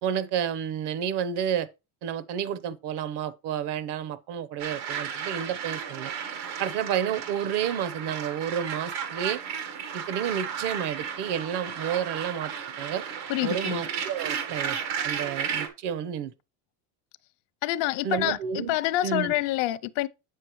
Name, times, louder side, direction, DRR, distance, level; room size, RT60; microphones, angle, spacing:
voice 1, 0.0-1.7 2.0-6.1 6.6-9.4 9.9-12.5 12.8-13.0 13.4-14.8 15.0-16.3 18.0-18.8 19.0-19.3, right 9 dB, 55° right, 0.9 m, -30 dB
sound 1, 4.6-15.7, right 7 dB, 85° right, 1.8 m, -34 dB
voice 2, 13.3-13.8 17.6-18.4 18.7-20.1, left 16 dB, 65° left, 0.6 m, -27 dB
7.3 x 6.5 x 3.0 m
cardioid pair, 115°, 48 cm